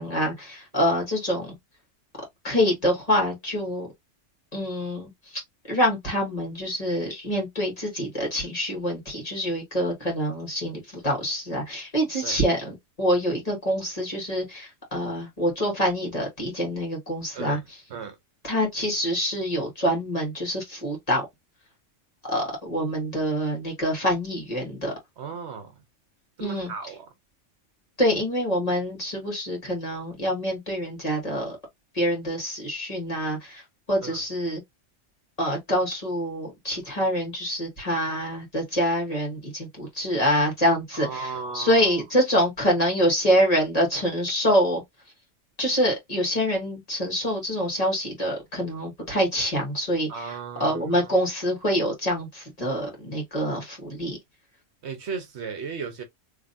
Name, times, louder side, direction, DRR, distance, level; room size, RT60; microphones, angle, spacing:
voice 1, 0.0-1.6 2.4-3.9 4.5-5.4 5.7-17.6 18.4-21.3 22.3-24.9 26.4-26.7 28.0-31.6 31.9-34.6 35.4-44.8 45.6-54.2, equal, 30° left, 2.0 m, -26 dB
voice 2, 25.2-25.8 26.4-27.1 34.0-34.2 40.9-42.0 50.1-51.1 54.8-56.0, right 5 dB, 65° right, 1.1 m, -36 dB
3.7 x 3.2 x 2.6 m
omnidirectional pair, 1.3 m